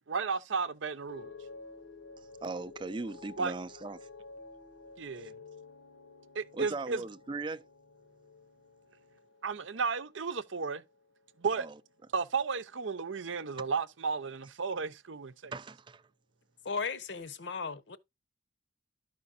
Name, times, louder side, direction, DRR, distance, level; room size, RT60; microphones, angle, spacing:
voice 1, 0.1-1.3 3.4-3.5 5.0-5.3 6.3-7.0 9.4-10.8 11.4-11.7 12.1-15.5, right 5 dB, 80° right, 0.7 m, -33 dB
sound 1, 1.1-11.4 11.7-12.3, left 4 dB, 90° left, 1.0 m, -52 dB
voice 2, 2.4-4.1 6.5-7.6 11.6-11.7 15.5-16.0, right 3 dB, 25° right, 0.4 m, -39 dB
voice 3, 16.6-18.0, left 5 dB, 65° left, 0.8 m, -36 dB
12.5 x 5.1 x 2.5 m
head